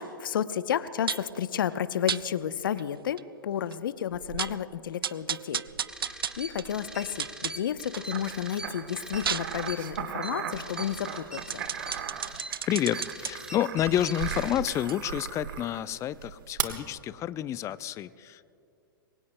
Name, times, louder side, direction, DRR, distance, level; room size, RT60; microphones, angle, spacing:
voice 1, 0.0-5.6 6.1-11.6, left 9 dB, 70° left, 14 dB, 0.8 m, -32 dB
sound 1, 1.1-1.4 2.1-2.2 2.8-2.9 3.2-3.3 3.7-3.8 4.1-4.6 5.0-8.1 8.5-13.3 13.9-16.6 16.9-17.0, right 8 dB, 85° right, 0.4 m, -35 dB
sound 2, 5.9-14.6, right 1 dB, 5° right, 2.1 m, -42 dB
sound 3, 8.1-15.8 16.6-16.7, right 9 dB, 65° right, 1.3 m, -37 dB
voice 2, 12.7-18.5, left 11 dB, 25° left, 17 dB, 0.5 m, -29 dB
28.0 x 23.0 x 2.2 m, 2.5 s
hypercardioid pair, 110°, 12 cm